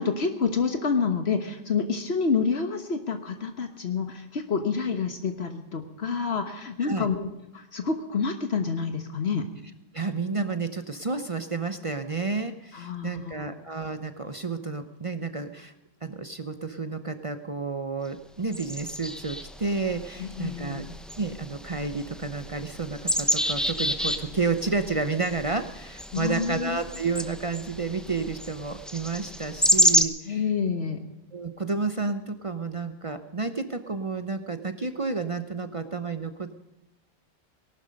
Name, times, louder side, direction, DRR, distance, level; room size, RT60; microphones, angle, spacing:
voice 1, 0.0-7.3 7.5-9.4 12.7-13.6 20.2-20.9 26.1-26.8 30.3-31.0, left 5 dB, 75° left, 6 dB, 1.5 m, -28 dB
voice 2, 9.9-15.7 16.0-20.8 21.2-30.4 31.3-36.6, right 4 dB, 35° right, 8 dB, 0.8 m, -31 dB
sound 1, 18.5-30.0, equal, ahead, 0.9 m, -29 dB
18.5 x 12.0 x 5.3 m, 0.96 s
omnidirectional pair, 1.1 m